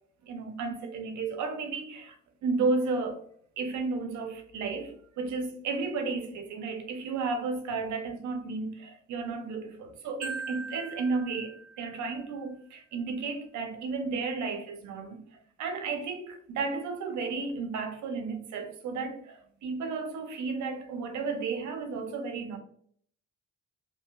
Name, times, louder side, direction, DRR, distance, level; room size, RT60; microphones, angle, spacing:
voice 1, 0.2-2.2 2.4-3.2 3.6-22.6, right 4 dB, 70° right, 0.6 m, -33 dB
Marimba xylophone, 10.2-12.3, right 4 dB, ahead, 1.2 m, -41 dB
2.8 x 2.7 x 2.2 m
cardioid pair, 90°, 30 cm